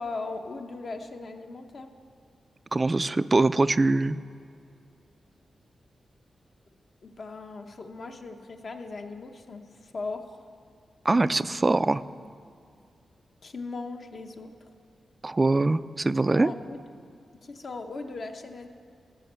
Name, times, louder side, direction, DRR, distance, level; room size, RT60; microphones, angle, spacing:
voice 1, 0.0-1.9 7.0-10.4 13.4-14.5 16.3-16.8 17.4-18.7, left 3 dB, 55° left, 5 dB, 0.8 m, -38 dB
voice 2, 2.7-4.2 11.1-12.0 15.2-16.5, right 2 dB, 30° right, 15 dB, 0.3 m, -23 dB
14.5 x 5.3 x 8.0 m, 2.3 s
cardioid pair, 75°, 0 cm